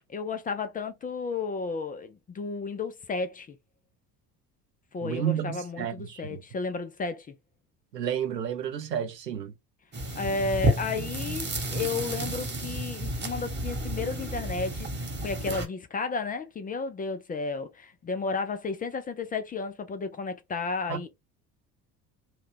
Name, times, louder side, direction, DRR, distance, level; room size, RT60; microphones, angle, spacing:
voice 1, 0.1-3.6 4.9-7.3 10.2-21.1, left 4 dB, 20° left, 0.4 m, -33 dB
voice 2, 5.0-6.4 7.9-9.5 20.9-21.0, right 9 dB, 90° right, 0.6 m, -31 dB
sound 1, 9.9-15.7, right 1 dB, 20° right, 1.3 m, -31 dB
2.8 x 2.2 x 3.3 m
figure-of-eight pair, 60°, 48 cm